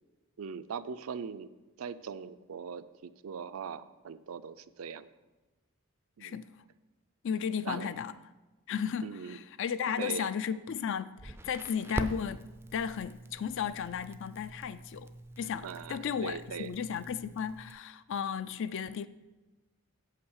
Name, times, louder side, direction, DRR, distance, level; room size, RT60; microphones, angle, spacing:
voice 1, 0.4-1.5 1.8-5.1 6.2-6.4 7.6-7.9 9.0-9.4 10.0-10.3 15.6-16.7, right 6 dB, 75° right, 0.4 m, -40 dB
voice 2, 6.2-6.5 7.2-8.1 8.7-15.1 15.4-19.1, left 7 dB, 60° left, 0.4 m, -34 dB
Crackle, 11.2-17.7, right 1 dB, 10° right, 0.4 m, -43 dB
8.1 x 5.8 x 6.4 m
head